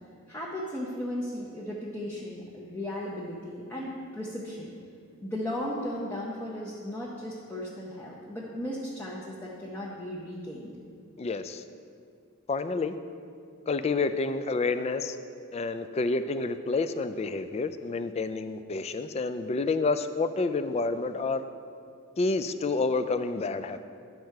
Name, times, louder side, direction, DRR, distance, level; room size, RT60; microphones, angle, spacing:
voice 1, 0.3-4.7 5.2-10.7, left 1 dB, 10° left, -5 dB, 0.8 m, -36 dB
voice 2, 11.2-11.6 12.5-13.0 13.7-15.2 15.5-21.4 22.2-23.8, left 3 dB, 30° left, 11 dB, 0.3 m, -29 dB
10.5 x 4.6 x 6.5 m, 2.3 s
head